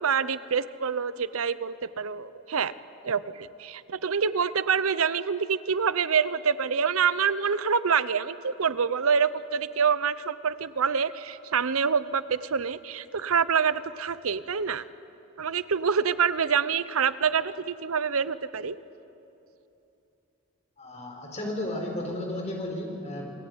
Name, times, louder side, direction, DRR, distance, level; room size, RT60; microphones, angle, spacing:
voice 1, 0.0-2.7 3.0-14.8 15.4-18.8, right 6 dB, 85° right, 16 dB, 0.7 m, -26 dB
voice 2, 20.8-23.3, left 1 dB, 30° left, 1 dB, 4.7 m, -33 dB
28.5 x 21.0 x 9.7 m, 2.8 s
head